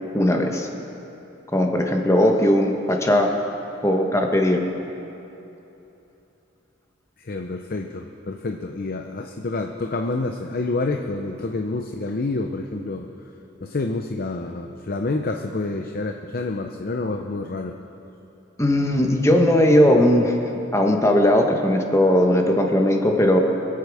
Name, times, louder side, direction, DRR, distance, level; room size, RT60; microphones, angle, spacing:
voice 1, 0.1-0.7 1.5-3.3 3.8-4.7 18.6-20.4 20.7-23.4, left 1 dB, 15° left, 2 dB, 1.2 m, -18 dB
voice 2, 7.2-13.1 13.6-17.7, left 3 dB, 50° left, 4 dB, 0.6 m, -28 dB
25.5 x 8.6 x 4.9 m, 2.9 s
head